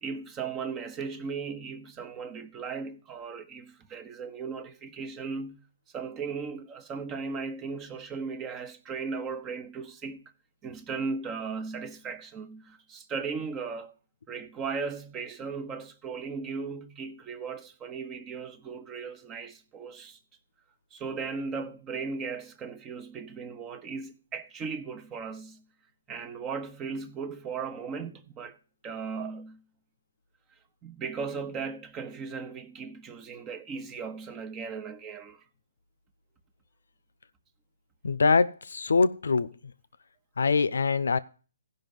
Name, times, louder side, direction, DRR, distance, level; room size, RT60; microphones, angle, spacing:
voice 1, 0.0-5.7 5.9-10.3 10.6-13.9 14.3-20.2 20.9-25.6 26.1-28.6 28.8-29.6 30.8-35.4, right 5 dB, 20° right, 1.0 m, -37 dB
voice 2, 38.0-39.5 40.4-41.2, left 4 dB, 75° left, 0.7 m, -23 dB
15.5 x 5.6 x 5.3 m
hypercardioid pair, 140°, 0 cm